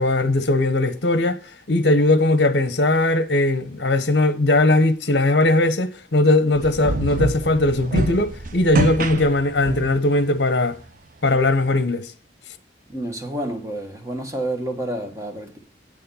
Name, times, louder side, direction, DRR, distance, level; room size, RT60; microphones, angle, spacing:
voice 1, 0.0-1.4 1.7-10.8 11.2-12.1, left 2 dB, 60° left, 1.0 m, -19 dB
sound 1, 6.6-10.1, right 2 dB, 45° right, 0.7 m, -25 dB
voice 2, 12.9-15.6, right 1 dB, 15° right, 1.4 m, -29 dB
8.5 x 6.6 x 5.6 m
head